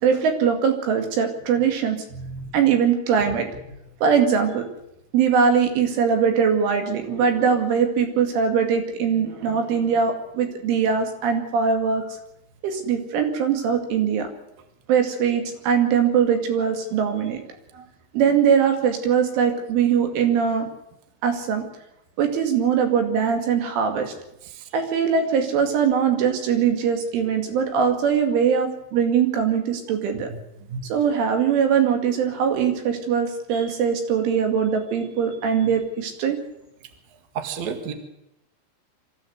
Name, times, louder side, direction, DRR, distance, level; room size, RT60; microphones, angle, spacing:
voice 1, 0.0-2.0 2.5-3.5 4.0-4.6 5.1-12.0 12.6-14.3 14.9-17.4 18.1-20.7 21.2-21.6 22.2-24.1 24.7-30.3 30.9-36.4, right 7 dB, 85° right, 5 dB, 4.8 m, -21 dB
voice 2, 2.1-2.5 30.3-30.4 30.7-30.8 37.3-37.9, right 5 dB, 50° right, 6 dB, 2.6 m, -31 dB
24.0 x 15.0 x 8.0 m, 0.86 s
omnidirectional pair, 5.5 m